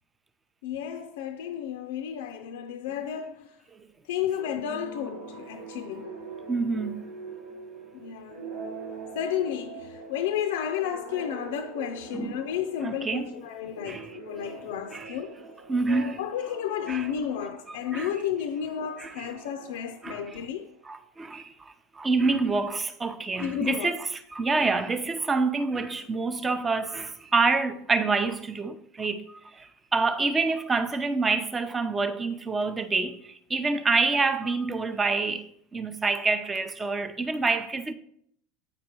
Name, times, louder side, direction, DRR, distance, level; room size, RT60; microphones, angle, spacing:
voice 1, 0.6-3.5 4.1-6.2 7.9-8.5 9.1-15.4 15.9-20.7 23.4-23.9, left 9 dB, 75° left, 0.4 m, -32 dB
sound 1, 4.3-20.7, right 4 dB, 80° right, 1.4 m, -44 dB
voice 2, 6.5-7.1 12.1-12.5 12.8-13.3 13.8-14.6 14.9-15.2 15.7-16.2 16.9-17.1 17.7-18.1 19.0-19.3 20.0-20.4 20.8-21.5 21.9-37.9, right 3 dB, 20° right, 0.6 m, -27 dB
7.8 x 5.0 x 2.9 m
hypercardioid pair, 85°, 0 cm